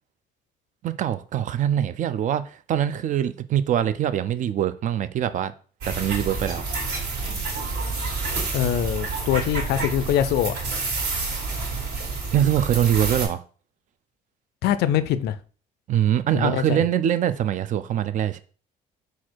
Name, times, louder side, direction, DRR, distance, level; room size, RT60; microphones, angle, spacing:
voice 1, 0.8-5.5 5.9-6.7 12.3-13.4 15.9-18.4, right 10 dB, 50° right, 0.4 m, -23 dB
sound 1, 5.8-13.3, right 3 dB, 75° right, 1.8 m, -29 dB
voice 2, 8.5-10.5 14.6-15.4 16.3-16.8, left 10 dB, 75° left, 0.4 m, -23 dB
4.2 x 2.4 x 4.5 m
cardioid pair, 110°, 17 cm